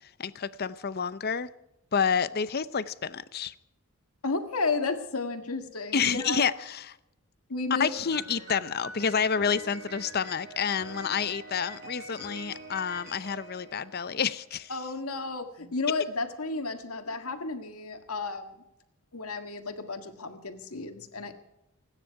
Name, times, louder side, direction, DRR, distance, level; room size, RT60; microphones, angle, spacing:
voice 1, 0.2-1.5 1.9-3.5 5.9-7.0 7.8-14.7, left 6 dB, 45° left, 0.6 m, -29 dB
voice 2, 4.2-6.4 7.5-7.9 14.7-18.6 19.1-21.3, left 3 dB, 80° left, 1.8 m, -32 dB
Piano, 7.9-14.5, right 2 dB, 50° right, 4.6 m, -45 dB
29.0 x 10.0 x 4.7 m
head